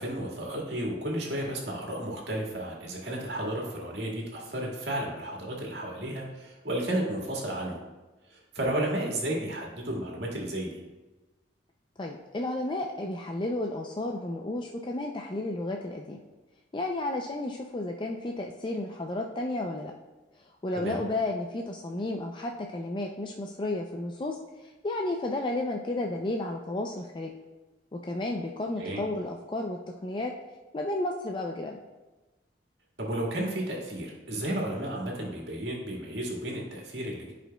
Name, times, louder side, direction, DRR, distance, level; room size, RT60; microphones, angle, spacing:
voice 1, 0.0-7.8 8.3-10.8 20.8-21.0 28.8-29.0 33.0-37.3, right 1 dB, 75° right, -2 dB, 1.8 m, -33 dB
voice 2, 12.0-16.2 16.7-19.9 20.6-24.4 24.6-27.3 27.9-30.3 30.7-31.8, left 2 dB, 30° left, 1 dB, 0.4 m, -32 dB
14.0 x 5.0 x 2.3 m, 1.2 s
head